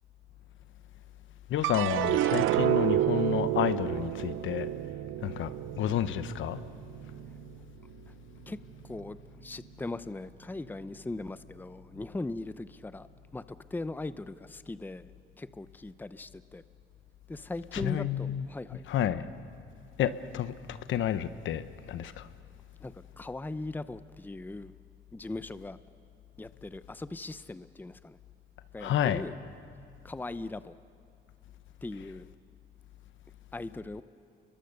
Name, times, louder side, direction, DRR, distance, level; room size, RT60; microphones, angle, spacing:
voice 1, 1.5-4.7 5.2-6.6 17.7-18.4 18.9-19.2 20.0-22.3 28.8-29.2, left 10 dB, 75° left, 1.0 m, -30 dB
sound 1, 1.6-8.1 8.5-9.2, right 13 dB, 90° right, 0.7 m, -30 dB
voice 2, 8.8-13.1 13.3-15.1 15.4-16.6 17.3-18.8 22.8-24.7 25.1-25.8 26.4-28.2 28.7-29.3 30.0-30.7 31.8-32.3 33.5-34.0, left 2 dB, 10° left, 0.6 m, -39 dB
30.0 x 22.5 x 6.6 m
cardioid pair, 90°, 20 cm